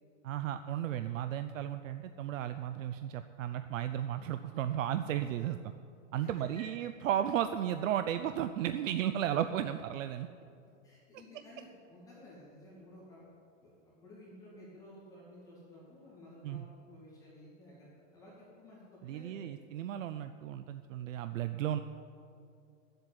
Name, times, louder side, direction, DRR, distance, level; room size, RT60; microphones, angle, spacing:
voice 1, 0.2-5.6 6.1-10.3 16.4-16.6 19.0-21.8, right 11 dB, 85° right, 10 dB, 0.6 m, -34 dB
voice 2, 6.2-6.6 10.8-13.2 13.6-19.5, left 1 dB, 10° left, -8 dB, 2.5 m, -54 dB
10.5 x 8.0 x 9.6 m, 2.5 s
supercardioid pair, 170°, 38 cm